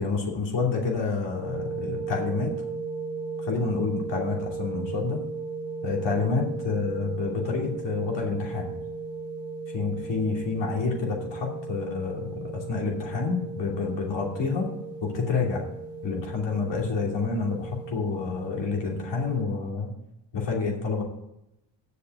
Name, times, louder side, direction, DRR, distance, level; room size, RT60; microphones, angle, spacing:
voice 1, 0.0-2.5 3.4-5.2 5.8-8.7 9.7-14.7 15.0-15.6 16.0-19.9 20.3-21.0, left 4 dB, 75° left, -1 dB, 2.9 m, -28 dB
sound 1, 1.3-19.4, right 4 dB, 45° left, 3.2 m, -36 dB
8.0 x 6.5 x 7.7 m, 0.88 s
cardioid pair, 85°, 44 cm